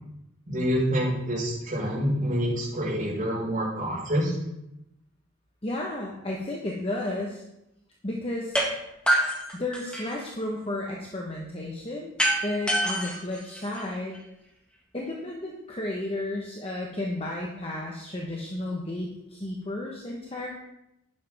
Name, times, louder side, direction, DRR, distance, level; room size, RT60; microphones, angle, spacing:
voice 1, 0.5-4.3, equal, 35° right, -9 dB, 5.0 m, -27 dB
voice 2, 5.6-7.4 8.0-8.6 9.5-12.1 12.4-14.2 14.9-20.5, left 1 dB, 25° left, -1 dB, 1.2 m, -33 dB
sound 1, 8.5-8.7 9.1-10.3 12.2-14.2, right 1 dB, 5° left, 1.8 m, -26 dB
11.0 x 11.0 x 3.6 m, 0.85 s
head